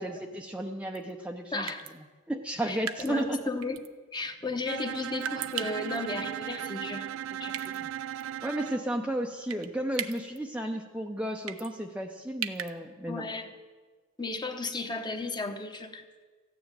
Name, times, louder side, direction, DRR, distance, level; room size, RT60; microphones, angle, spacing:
voice 1, 0.0-1.7 2.3-3.4 7.8-7.9 8.4-13.3, right 1 dB, 5° right, 2 dB, 0.6 m, -33 dB
sound 1, 0.9-1.1 1.7-1.9 2.9-3.2 3.6-3.9 5.2-6.0 7.5-7.8 8.2-8.3 9.5-9.7 9.9-10.4 11.5-11.7 12.4-12.7, right 9 dB, 90° right, 0.8 m, -36 dB
voice 2, 1.5-1.8 2.7-3.8 4.1-7.8 13.1-13.5 14.2-16.0, left 2 dB, 20° left, 6 dB, 1.1 m, -35 dB
Bowed string instrument, 4.7-8.9, right 10 dB, 65° right, 0.4 m, -37 dB
15.0 x 9.6 x 9.0 m, 1.4 s
head